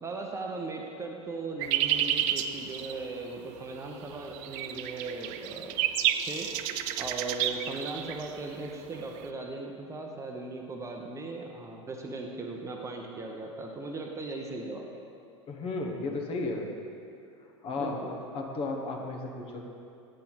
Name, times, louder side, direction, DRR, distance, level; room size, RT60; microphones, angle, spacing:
voice 1, 0.0-5.8 6.2-6.7 7.0-14.9 17.8-18.1, right 3 dB, 20° right, 1 dB, 0.7 m, -38 dB
sound 1, 1.6-9.3, right 11 dB, 45° right, 0.4 m, -31 dB
voice 2, 15.5-16.6 17.6-18.0 18.3-19.6, left 3 dB, 35° left, 1 dB, 1.0 m, -33 dB
8.7 x 5.6 x 4.0 m, 2.5 s
hypercardioid pair, 85°, 16 cm